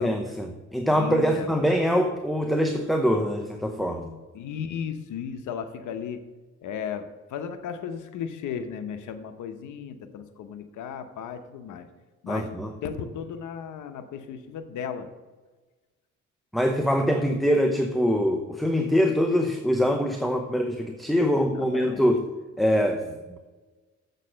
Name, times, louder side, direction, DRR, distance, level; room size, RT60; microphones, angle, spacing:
voice 1, 0.0-4.1 12.3-12.7 16.5-22.3 22.6-23.4, equal, ahead, 4 dB, 0.8 m, -24 dB
voice 2, 0.9-1.7 4.3-6.2 6.6-11.9 12.2-15.1 21.3-22.1, left 7 dB, 80° left, 9 dB, 0.9 m, -35 dB
7.5 x 6.6 x 6.3 m, 1.3 s
cardioid pair, 90°, 30 cm